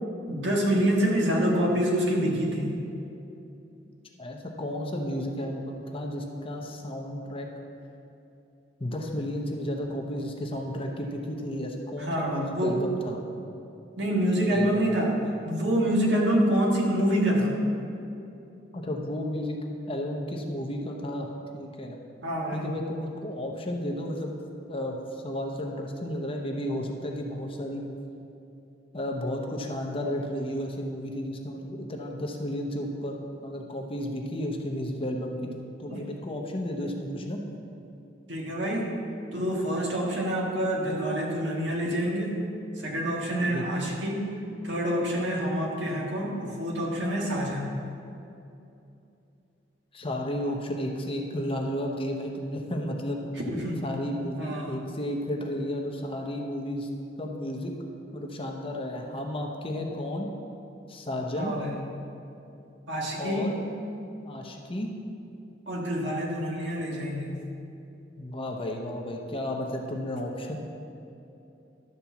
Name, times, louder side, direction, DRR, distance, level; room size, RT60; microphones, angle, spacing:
voice 1, 0.3-2.8 12.0-12.8 14.0-15.2 15.4-17.6 22.2-22.7 35.9-36.0 38.3-38.9 39.3-42.4 42.8-44.3 44.6-47.7 53.4-53.8 54.4-54.8 59.7-59.9 61.4-61.8 62.9-63.5 65.7-67.4, equal, 70° right, -2 dB, 1.7 m, -27 dB
voice 2, 4.2-7.5 8.8-13.2 14.5-14.9 18.7-19.6 19.9-21.3 21.5-22.0 22.5-24.4 24.7-27.8 28.9-37.4 43.5-43.6 49.9-53.2 53.8-56.9 57.2-57.7 58.1-60.3 60.9-61.5 63.2-63.6 64.2-64.9 68.2-70.6, left 1 dB, 30° left, 1 dB, 0.9 m, -33 dB
12.0 x 4.4 x 7.1 m, 2.8 s
head